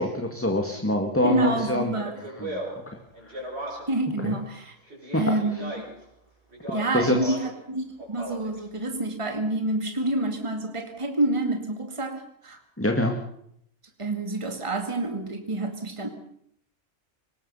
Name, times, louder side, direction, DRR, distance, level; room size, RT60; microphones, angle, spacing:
voice 1, 0.0-1.9 2.4-2.6 2.9-3.0 3.3-3.4 4.2-4.4 5.1-5.2 6.9-7.3 12.8-13.2, left 1 dB, 10° left, 3 dB, 2.0 m, -25 dB
voice 2, 1.2-2.1 3.9-4.8 5.2-5.9 6.7-12.6 14.0-16.1, right 2 dB, 25° right, 5 dB, 2.3 m, -28 dB
Speech, 1.9-4.1 4.9-6.0 6.5-7.6 8.0-8.6, equal, 55° right, 7.1 m, -37 dB
24.5 x 20.0 x 5.7 m, 0.69 s
omnidirectional pair, 1.3 m